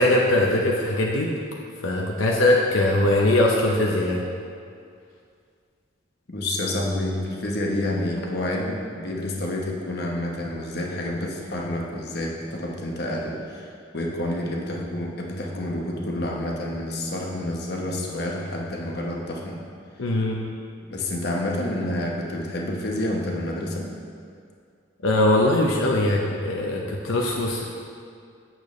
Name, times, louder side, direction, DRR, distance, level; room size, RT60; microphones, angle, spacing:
voice 1, 0.0-1.3 1.8-4.2 20.0-20.4 25.0-27.7, left 1 dB, 85° left, -1 dB, 0.7 m, -21 dB
voice 2, 6.3-19.6 20.9-23.9, left 1 dB, 55° left, -1 dB, 1.0 m, -29 dB
8.7 x 6.7 x 3.1 m, 2.3 s
head